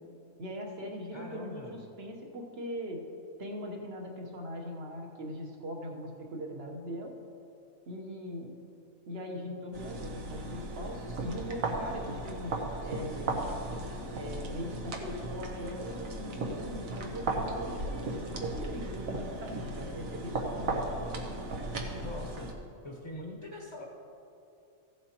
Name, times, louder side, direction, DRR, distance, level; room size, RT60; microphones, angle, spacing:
voice 1, 0.4-3.0 3.4-7.1 7.9-8.5 9.1-13.4 14.1-20.8, equal, 50° right, 1 dB, 1.3 m, -40 dB
voice 2, 1.1-1.7 22.0-22.5 22.8-23.8, left 1 dB, 20° left, -1 dB, 0.9 m, -42 dB
sound 1, 9.7-22.5, right 2 dB, 75° right, 1.4 m, -36 dB
15.5 x 7.9 x 3.0 m, 2.8 s
omnidirectional pair, 1.4 m